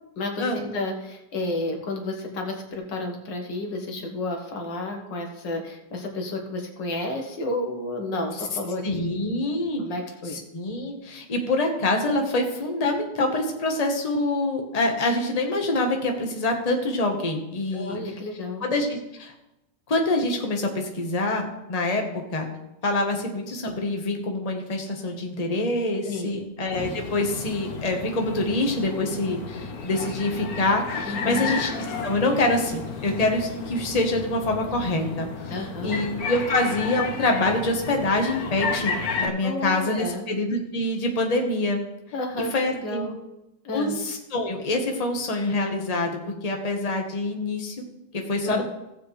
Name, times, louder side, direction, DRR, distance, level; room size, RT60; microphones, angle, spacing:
voice 1, 0.2-9.2 9.8-10.4 17.7-18.6 26.1-26.4 31.1-31.6 35.5-36.0 39.4-40.2 42.1-43.2 43.6-44.0 48.4-48.6, left 2 dB, 85° left, 2 dB, 2.1 m, -31 dB
voice 2, 8.8-9.8 10.3-18.0 18.6-19.3 19.9-22.5 22.8-31.7 32.0-41.8 42.4-43.0 43.7-47.7 48.1-48.6, left 2 dB, 25° left, 2 dB, 1.3 m, -26 dB
sound 1, 26.7-39.3, left 4 dB, 60° left, 1.5 m, -32 dB
16.0 x 7.5 x 3.3 m, 0.93 s
omnidirectional pair, 1.9 m